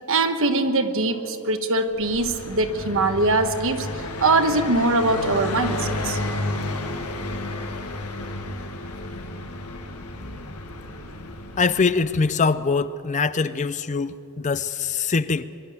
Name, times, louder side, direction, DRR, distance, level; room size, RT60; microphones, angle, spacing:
voice 1, 0.1-3.9 4.2-6.2, right 2 dB, 60° right, 8 dB, 1.3 m, -22 dB
Car passing by, 1.9-12.5, left 2 dB, 80° left, 1.7 m, -32 dB
voice 2, 11.6-15.5, left 4 dB, 35° left, 14 dB, 0.5 m, -23 dB
23.5 x 12.0 x 9.4 m, 2.8 s
head